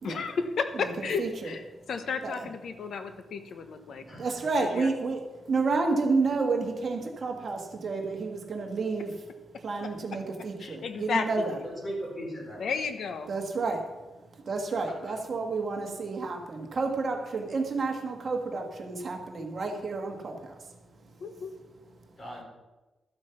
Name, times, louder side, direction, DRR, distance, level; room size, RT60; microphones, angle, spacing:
voice 1, 0.0-4.0 4.5-4.9 9.8-9.9 10.6-11.6 12.6-13.3 21.2-21.5, left 5 dB, 65° left, 8 dB, 1.1 m, -33 dB
voice 2, 1.0-1.5 2.2-2.5 4.2-9.1 9.6-11.5 13.3-13.8 14.4-20.6, right 3 dB, 45° right, 3 dB, 1.6 m, -30 dB
voice 3, 4.1-4.4 11.6-12.6 14.8-15.1 22.2-22.4, equal, 25° left, -3 dB, 4.7 m, -38 dB
13.0 x 7.9 x 5.8 m, 1.1 s
wide cardioid pair, 140°, 0 cm